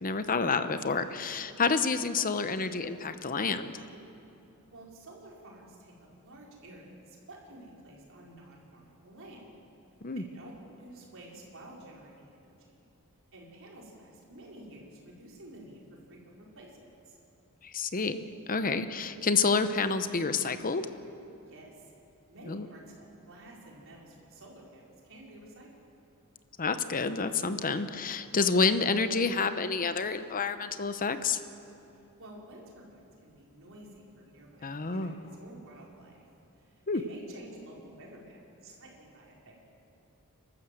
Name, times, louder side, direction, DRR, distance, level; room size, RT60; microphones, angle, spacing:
voice 1, 0.0-3.7 10.0-10.2 17.6-18.2 18.5-20.8 22.5-22.7 26.6-31.4 34.6-35.1 36.9-37.0, left 4 dB, 40° left, 10 dB, 0.9 m, -29 dB
voice 2, 4.7-5.9 6.2-9.5 10.1-10.5 10.8-12.8 13.3-15.8 16.1-16.9 21.5-21.7 22.3-25.7 32.2-36.2 36.9-39.6, right 1 dB, 65° right, -2 dB, 4.7 m, -51 dB
30.0 x 13.0 x 7.8 m, 2.8 s
head